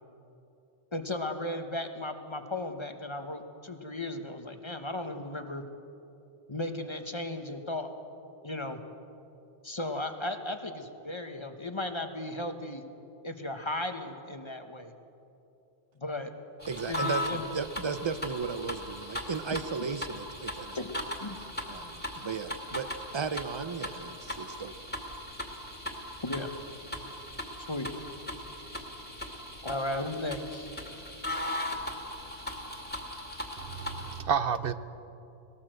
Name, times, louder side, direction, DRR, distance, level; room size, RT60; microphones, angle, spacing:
voice 1, 0.9-5.6 6.5-7.9 8.4-8.8 9.6-12.8 13.2-14.9 16.0-16.3 16.9-17.5 20.7-20.9 21.2-21.4 26.2-26.5 27.6-27.9 29.6-30.7, left 1 dB, 30° left, 7 dB, 1.1 m, -35 dB
sound 1, 16.6-34.2, left 1 dB, 10° left, 2.2 m, -38 dB
voice 2, 16.7-20.8 21.7-22.9 23.1-24.8, right 5 dB, 30° right, 11 dB, 0.7 m, -35 dB
voice 3, 33.6-34.7, right 7 dB, 65° right, 12 dB, 1.0 m, -30 dB
20.0 x 18.0 x 7.7 m, 2.8 s
omnidirectional pair, 1.0 m